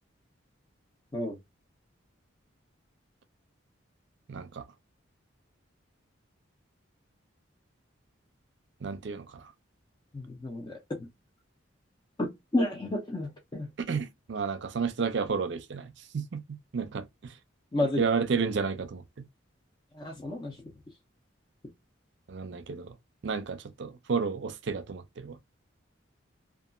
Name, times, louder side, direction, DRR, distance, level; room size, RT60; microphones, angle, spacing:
voice 1, 4.3-4.6 8.8-9.4 13.9-17.3 18.0-19.0 22.3-22.9 23.2-25.4, right 5 dB, 60° right, 0.5 m, -32 dB
voice 2, 10.1-11.1 12.2-13.7 17.7-18.0 19.9-20.6, left 1 dB, 20° left, 0.4 m, -31 dB
2.8 x 2.3 x 2.4 m
head